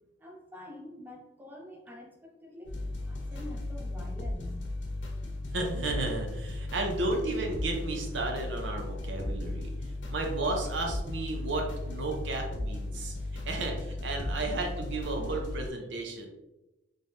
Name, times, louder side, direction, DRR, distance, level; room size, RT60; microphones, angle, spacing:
voice 1, 0.2-4.7 8.8-9.7 14.2-14.8, left 1 dB, 10° right, -1 dB, 0.6 m, -48 dB
sound 1, 2.6-15.7, left 2 dB, 70° left, 0.7 m, -36 dB
voice 2, 5.5-9.7 10.1-13.1 13.5-16.3, right 2 dB, 75° right, 2 dB, 0.7 m, -33 dB
3.9 x 3.2 x 2.6 m, 0.99 s
head